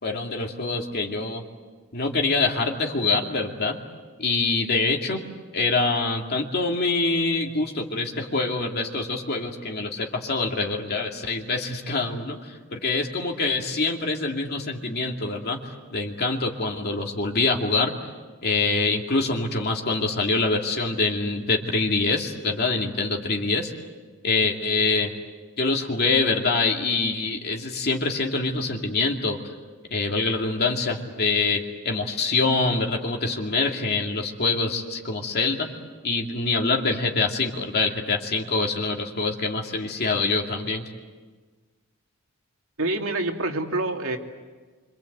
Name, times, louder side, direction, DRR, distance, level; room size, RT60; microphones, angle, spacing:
voice 1, 0.0-1.4 1.9-3.8 4.2-5.2 5.5-17.9 18.4-23.7 24.2-25.1 25.6-29.5 29.9-35.7 36.0-40.8, left 3 dB, 50° left, 1 dB, 2.6 m, -25 dB
voice 2, 42.8-44.2, right 2 dB, 70° right, 3 dB, 2.7 m, -26 dB
27.0 x 26.0 x 8.1 m, 1.4 s
head